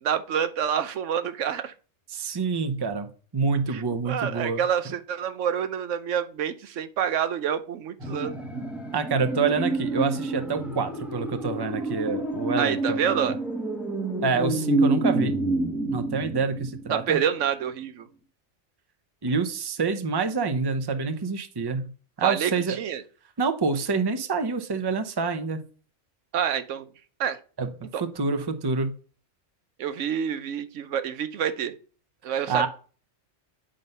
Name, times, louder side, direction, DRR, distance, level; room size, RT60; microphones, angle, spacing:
voice 1, 0.0-1.7 3.7-8.4 12.6-13.3 16.9-18.1 22.2-23.0 26.3-26.9 27.2-27.4 27.9-28.0 29.8-31.7 32.2-32.7, right 8 dB, 85° right, 11 dB, 1.1 m, -27 dB
voice 2, 2.1-4.6 8.9-13.4 14.2-15.4 15.9-17.2 19.2-21.9 22.2-22.8 23.4-25.6 27.6-27.7 28.0-28.9 32.5-32.7, right 4 dB, 25° right, 9 dB, 0.7 m, -27 dB
sound 1, 8.0-17.1 17.4-17.5, right 2 dB, ahead, 1.0 m, -28 dB
9.2 x 3.9 x 5.4 m, 0.39 s
omnidirectional pair, 1.2 m